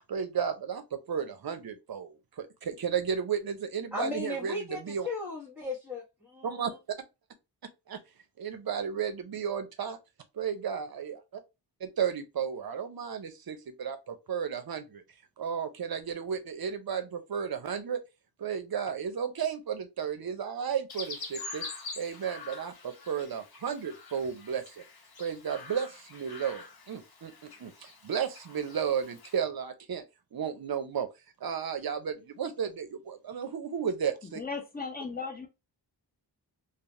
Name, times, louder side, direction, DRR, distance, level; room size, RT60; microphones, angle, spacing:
voice 1, 0.1-4.5 4.8-5.1 6.4-6.7 7.9-8.0 8.4-10.0 10.3-11.4 11.8-15.0 15.4-18.0 18.4-21.6 22.0-24.8 25.2-30.0 30.3-31.1 31.4-34.4, right 7 dB, 55° right, 0.6 m, -33 dB
voice 2, 3.9-6.8, left 2 dB, ahead, 1.0 m, -37 dB
Chirp tweet, 20.9-29.4, left 4 dB, 55° left, 0.8 m, -45 dB
voice 3, 34.3-35.5, left 4 dB, 20° left, 0.7 m, -36 dB
3.2 x 2.0 x 2.6 m
wide cardioid pair, 140°, 44 cm